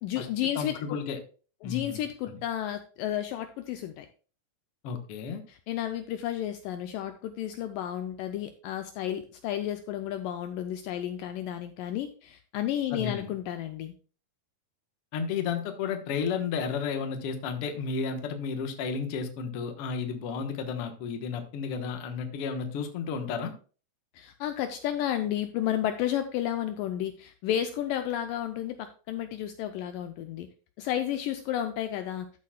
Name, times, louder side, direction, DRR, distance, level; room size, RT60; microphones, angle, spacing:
voice 1, 0.0-0.8 1.6-4.1 5.5-13.9 24.2-30.5 30.8-32.3, left 11 dB, 80° left, 8 dB, 2.0 m, -32 dB
voice 2, 0.5-1.2 1.6-2.4 4.8-5.4 12.9-13.3 15.1-23.5, left 6 dB, 65° left, 6 dB, 1.5 m, -32 dB
13.5 x 7.4 x 2.3 m, 0.37 s
omnidirectional pair, 4.3 m